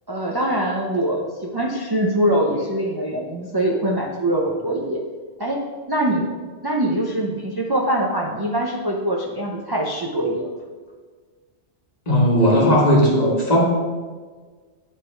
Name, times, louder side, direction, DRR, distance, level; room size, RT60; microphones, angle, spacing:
voice 1, 0.1-5.0 5.4-6.3 6.6-10.5, right 1 dB, 30° right, -1 dB, 0.5 m, -23 dB
voice 2, 12.1-13.6, equal, 35° left, -3 dB, 1.5 m, -16 dB
9.0 x 3.8 x 4.4 m, 1.5 s
omnidirectional pair, 1.2 m